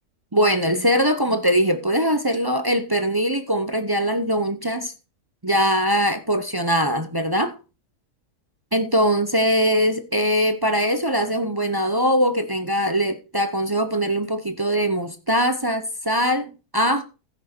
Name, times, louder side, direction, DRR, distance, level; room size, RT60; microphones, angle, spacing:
voice 1, 0.3-4.9 5.4-7.5 8.7-17.0, equal, 20° right, 0.6 m, -21 dB
15.0 x 6.2 x 4.5 m
omnidirectional pair, 1.7 m